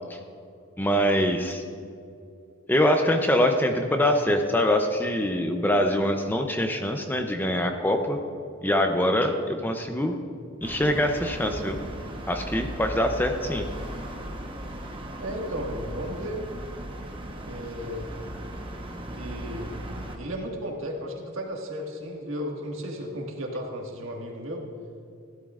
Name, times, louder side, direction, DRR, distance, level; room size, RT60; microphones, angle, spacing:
voice 1, 0.8-1.6 2.7-8.2 8.6-10.2 10.6-11.8 12.3-13.6, left 1 dB, 10° left, 5 dB, 0.5 m, -24 dB
sound 1, 10.6-20.2, right 1 dB, 25° right, 1.0 m, -37 dB
voice 2, 15.2-16.4 17.4-18.2 19.1-19.8 20.1-24.7, equal, 70° right, 0 dB, 1.7 m, -34 dB
15.5 x 12.5 x 2.4 m, 2.5 s
head